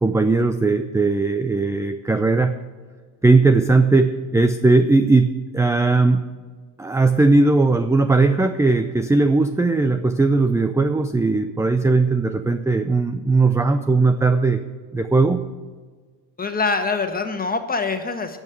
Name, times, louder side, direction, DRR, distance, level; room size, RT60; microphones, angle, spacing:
voice 1, 0.0-2.5 3.2-6.3 6.8-14.6 14.9-15.4, right 3 dB, 5° right, 9 dB, 0.5 m, -18 dB
voice 2, 16.4-18.4, left 4 dB, 20° left, 6 dB, 1.5 m, -24 dB
10.5 x 6.3 x 9.0 m, 1.5 s
supercardioid pair, 80°, 46 cm